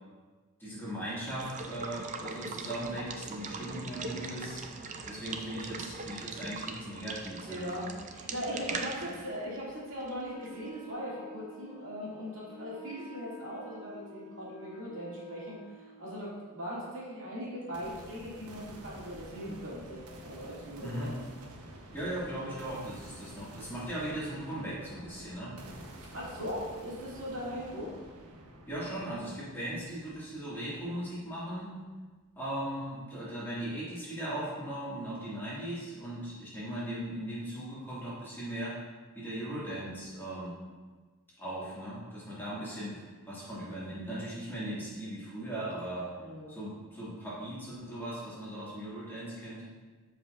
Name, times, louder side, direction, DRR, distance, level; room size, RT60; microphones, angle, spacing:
voice 1, 0.6-4.6 5.0-7.9 8.5-9.1 20.8-21.1 21.9-25.6 28.7-31.7 32.4-38.8 39.1-40.5 41.4-46.1 46.5-49.6, right 1 dB, 10° left, -9 dB, 2.1 m, -38 dB
Water / Water tap faucet / Liquid, 1.0-10.7, right 4 dB, 35° right, 0.4 m, -41 dB
voice 2, 7.4-15.6 16.0-21.2 26.1-27.9 46.2-46.5, equal, 60° right, -7 dB, 2.5 m, -39 dB
Wind instrument woodwind instrument, 10.3-16.1, left 1 dB, 25° left, 1.6 m, -50 dB
sound 1, 17.7-31.7, right 1 dB, 80° right, 1.0 m, -50 dB
13.0 x 4.9 x 2.5 m, 1.4 s
head